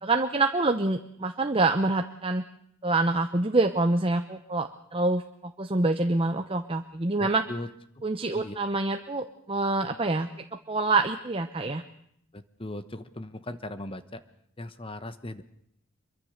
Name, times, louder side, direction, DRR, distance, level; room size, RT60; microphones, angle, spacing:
voice 1, 0.0-2.4 2.8-7.4 8.0-11.8, right 2 dB, 25° right, 6 dB, 0.8 m, -26 dB
voice 2, 7.2-7.7 8.0-8.1 8.3-8.5 12.3-14.2 14.6-15.4, left 1 dB, 25° left, 11 dB, 1.1 m, -38 dB
24.5 x 23.0 x 6.6 m, 0.72 s
head